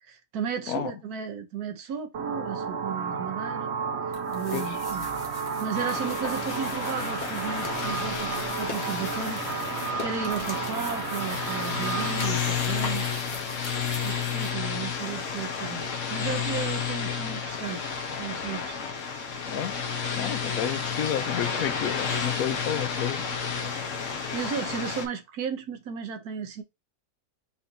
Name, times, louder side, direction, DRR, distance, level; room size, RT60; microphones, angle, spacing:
voice 1, 0.0-3.7 4.0-5.1 5.6-9.6 10.0-13.1 13.5-13.6 14.0-17.9 18.2-18.8 19.3-19.6 23.6-26.6, right 7 dB, 80° right, 1.3 m, -35 dB
sound 1, 2.1-12.3, right 6 dB, 60° right, 0.8 m, -32 dB
sound 2, 4.1-14.5, left 3 dB, 35° left, 1.1 m, -42 dB
sound 3, 5.7-25.1, left 6 dB, 60° left, 1.3 m, -31 dB
voice 2, 17.1-17.4 19.5-19.8 20.2-23.2, left 10 dB, 75° left, 1.0 m, -31 dB
5.6 x 2.8 x 2.8 m
omnidirectional pair, 1.6 m